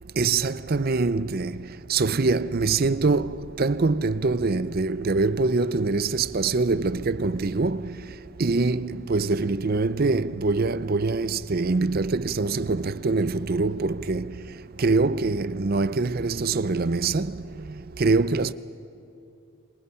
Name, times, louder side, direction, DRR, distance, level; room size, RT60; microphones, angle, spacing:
voice 1, 0.2-1.6 1.9-8.0 8.4-14.3 14.8-17.3 18.0-18.5, right 3 dB, 40° right, 0.5 m, -24 dB
29.0 x 26.0 x 5.7 m
head